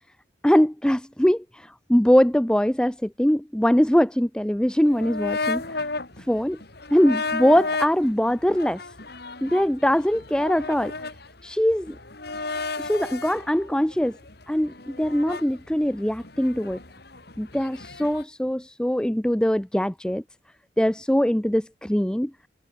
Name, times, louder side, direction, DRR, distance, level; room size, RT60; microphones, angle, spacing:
voice 1, 0.4-5.9 6.3-6.6 6.9-8.8 9.4-10.9 11.4-12.0 12.8-14.2 14.5-16.8 17.4-20.2 20.8-22.3, equal, 5° left, 0.5 m, -22 dB
sound 1, 4.9-18.2, left 3 dB, 55° left, 3.5 m, -34 dB
head